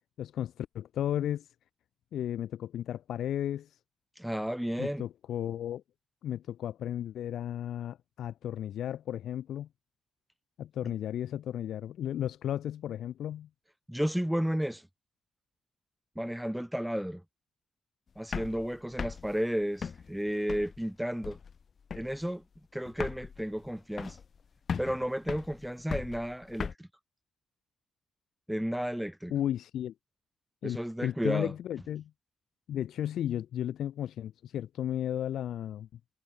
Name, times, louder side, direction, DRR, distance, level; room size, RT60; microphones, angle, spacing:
voice 1, 0.2-1.5 2.1-3.8 4.8-5.8 6.2-9.7 10.6-13.5 29.3-29.9 30.6-32.1 32.7-35.9, left 11 dB, 70° left, 1.2 m, -34 dB
voice 2, 4.2-5.0 13.9-14.9 16.1-17.2 18.2-21.4 21.9-22.4 22.7-24.2 24.8-26.9 28.5-29.3 30.6-31.5, equal, 5° right, 1.6 m, -32 dB
sound 1, 18.2-20.9 21.2-21.6 21.9-22.3 22.6-22.7 22.9-24.4 24.7-26.7, left 6 dB, 45° left, 1.3 m, -38 dB
cardioid pair, 90°, 0 cm